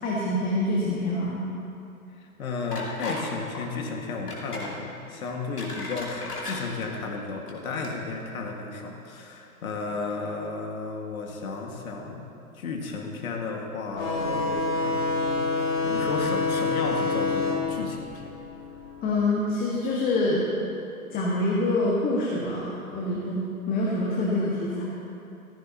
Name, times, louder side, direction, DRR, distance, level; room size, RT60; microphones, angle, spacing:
voice 1, 0.0-1.4 19.0-20.4 21.1-24.8, left 2 dB, 20° left, -4 dB, 1.6 m, -26 dB
voice 2, 2.2-12.3 12.5-18.3, left 4 dB, 65° left, 1 dB, 2.0 m, -33 dB
sound 1, 2.7-3.3 3.5-3.7 4.3-4.7 5.3-6.6 7.3-7.5 7.8-7.9, left 2 dB, 85° left, 2.6 m, -36 dB
sound 2, 13.9-19.1, left 3 dB, 40° left, 3.0 m, -27 dB
15.0 x 15.0 x 3.0 m, 2.7 s
hypercardioid pair, 120°, 45 cm